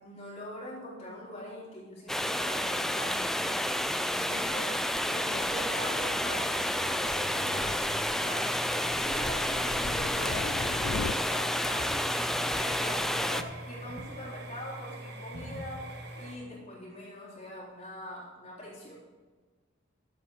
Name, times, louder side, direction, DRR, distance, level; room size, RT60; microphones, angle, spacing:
voice 1, 0.0-18.9, equal, 35° left, -5 dB, 3.6 m, -43 dB
sound 1, 2.1-13.4, left 1 dB, ahead, 0.4 m, -30 dB
Thunder, 3.5-11.1, left 5 dB, 65° left, 0.4 m, -42 dB
sound 2, 5.2-16.3, right 1 dB, 55° right, 1.5 m, -43 dB
12.0 x 7.8 x 4.8 m, 1.4 s
head